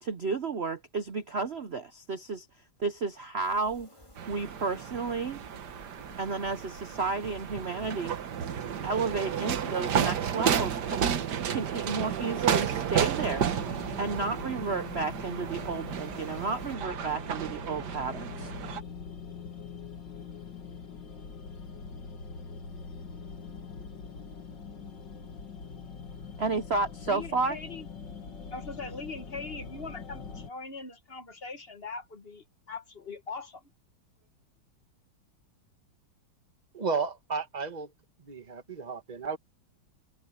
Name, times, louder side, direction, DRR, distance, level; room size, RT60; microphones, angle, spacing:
voice 1, 0.0-2.5 2.8-3.9 4.3-5.4 6.2-8.2 8.8-11.1 11.5-13.5 14.0-18.5 26.4-27.6, right 4 dB, 85° right, 0.5 m, -32 dB
sound 1, 3.4-16.8, left 1 dB, 15° left, 3.6 m, -54 dB
sound 2, 4.2-18.8, right 8 dB, 55° right, 1.6 m, -32 dB
sound 3, 13.2-30.5, left 5 dB, 55° left, 2.7 m, -43 dB
voice 2, 27.0-27.9 28.5-33.6, left 3 dB, 35° left, 1.2 m, -41 dB
voice 3, 36.7-37.9 38.2-39.4, right 5 dB, 20° right, 1.6 m, -33 dB
omnidirectional pair, 2.3 m